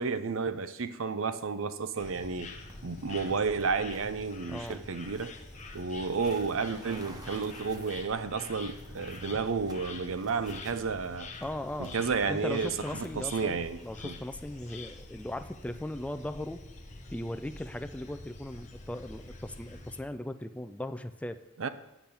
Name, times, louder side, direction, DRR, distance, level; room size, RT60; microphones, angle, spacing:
voice 1, 0.0-2.5 2.8-5.3 5.7-11.3 11.8-14.2 21.6-21.7, right 5 dB, 75° right, 12 dB, 0.6 m, -32 dB
sound 1, 2.0-20.0, left 3 dB, 35° left, 0.9 m, -46 dB
sound 2, 2.7-16.4, right 1 dB, 20° right, 0.9 m, -56 dB
voice 2, 4.5-4.8 11.4-12.0 12.3-16.6 17.1-21.4, left 1 dB, 5° left, 9 dB, 0.4 m, -38 dB
8.8 x 5.9 x 7.0 m, 0.90 s
head